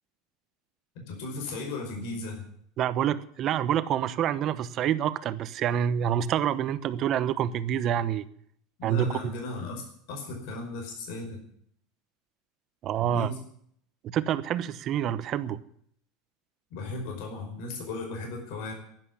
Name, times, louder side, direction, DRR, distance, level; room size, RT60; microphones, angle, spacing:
voice 1, 1.1-2.4 8.8-11.4 13.0-13.4 16.7-18.7, left 2 dB, 60° left, 2 dB, 5.2 m, -36 dB
voice 2, 2.8-8.3 8.8-9.1 12.8-13.3 14.0-15.6, right 10 dB, 35° right, 14 dB, 0.9 m, -27 dB
11.5 x 11.0 x 9.6 m, 0.66 s
supercardioid pair, 160°, 0 cm